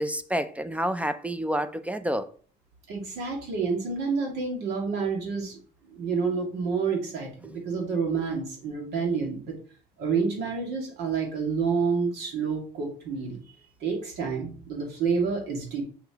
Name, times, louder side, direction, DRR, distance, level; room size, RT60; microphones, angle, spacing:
voice 1, 0.0-2.3 7.4-7.5, equal, 10° right, 0.4 m, -29 dB
voice 2, 2.9-5.6 5.9-9.5 10.0-13.4 13.8-15.8, right 5 dB, 80° right, 2.1 m, -28 dB
5.7 x 5.7 x 2.9 m
cardioid pair, 110°, 17 cm